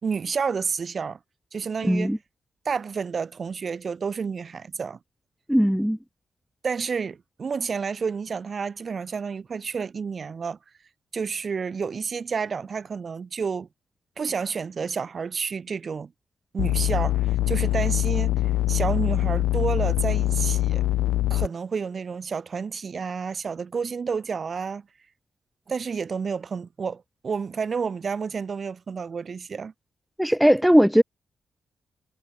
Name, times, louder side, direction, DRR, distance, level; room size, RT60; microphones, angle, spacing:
voice 1, 0.0-1.2 1.5-2.1 2.6-5.0 6.6-10.6 11.1-13.7 14.2-16.1 16.5-20.8 21.3-24.9 25.7-29.7, right 5 dB, 55° right, 6.3 m, -30 dB
voice 2, 1.8-2.2 5.5-6.0 30.2-31.0, equal, 5° right, 2.2 m, -18 dB
sound 1, 16.6-21.5, left 15 dB, 80° left, 0.4 m, -23 dB
hypercardioid pair, 40°, 0 cm